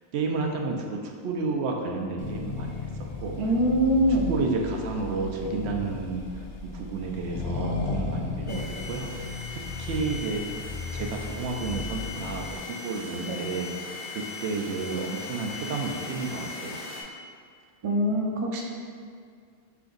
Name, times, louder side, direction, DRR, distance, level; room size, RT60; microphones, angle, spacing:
voice 1, 0.1-2.8 3.2-3.4 4.1-16.8, right 3 dB, 80° right, 1 dB, 0.8 m, -32 dB
Accelerating revving vroom, 2.2-12.6, left 3 dB, 60° left, 0.6 m, -35 dB
voice 2, 3.4-4.3 8.4-8.6 13.3-13.4 17.8-18.6, equal, 40° right, -1 dB, 0.4 m, -24 dB
sound 1, 8.5-17.0, left 3 dB, 85° left, 0.9 m, -39 dB
3.5 x 3.4 x 3.8 m, 2.2 s
omnidirectional pair, 1.1 m